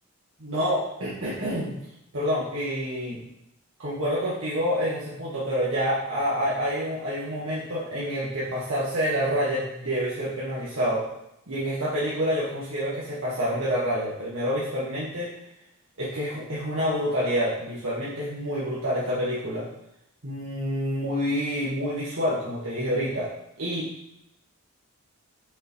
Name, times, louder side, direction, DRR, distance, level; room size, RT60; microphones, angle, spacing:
voice 1, 0.4-1.7 2.1-3.2 3.8-11.1 11.5-15.3 16.0-19.6 20.2-23.3 23.6-23.9, equal, 75° right, -9 dB, 1.6 m, -27 dB
5.9 x 5.5 x 3.1 m, 0.81 s
head